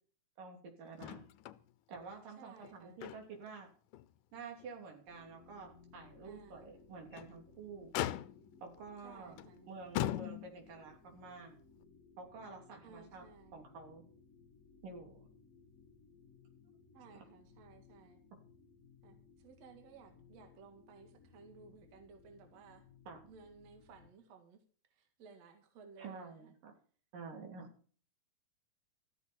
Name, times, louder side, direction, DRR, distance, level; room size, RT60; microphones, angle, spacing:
voice 1, 0.4-1.2 1.9-3.7 4.3-7.9 8.6-9.4 9.7-11.6 12.2-13.2 13.5-14.0 14.8-15.3 17.1-17.2 23.1-23.2 26.0-26.8 27.1-27.7, right 4 dB, 80° right, 3 dB, 4.8 m, -49 dB
Motor vehicle (road), 1.0-1.6 1.9-2.0 2.6-3.5 3.9-4.1 4.6-4.7 6.9-7.4 7.9-8.6 9.4-9.5 9.9-10.7 11.8-11.9, left 13 dB, 80° left, 2.2 m, -39 dB
voice 2, 2.4-3.1 6.2-6.7 9.0-9.7 12.8-13.7 16.9-18.2 19.0-22.9 23.3-24.6 24.9-26.5, right 5 dB, 55° right, 5 dB, 2.9 m, -58 dB
sound 1, 5.1-24.1, left 5 dB, 45° left, 1.1 m, -62 dB
14.0 x 14.0 x 4.4 m, 0.43 s
omnidirectional pair, 3.8 m